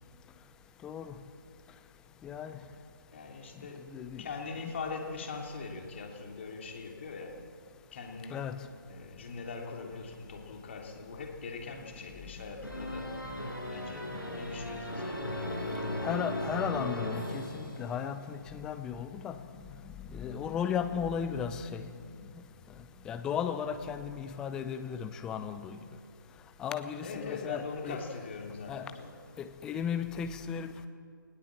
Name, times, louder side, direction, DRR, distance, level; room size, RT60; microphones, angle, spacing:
voice 1, 0.8-1.1 2.2-2.6 3.9-4.3 8.3-8.7 16.0-19.4 20.1-21.9 22.3-22.4 23.1-25.8 26.6-28.0 28.7-28.9 29.4-30.7, left 8 dB, 5° left, 10 dB, 0.6 m, -35 dB
voice 2, 3.1-3.9 4.2-7.4 7.9-8.4 8.9-13.1 13.7-16.2 27.0-29.1, left 4 dB, 35° left, 2 dB, 3.1 m, -42 dB
sound 1, 12.6-18.3, left 1 dB, 80° left, 6.5 m, -37 dB
19.5 x 19.0 x 7.6 m, 2.3 s
figure-of-eight pair, 150°, 11 cm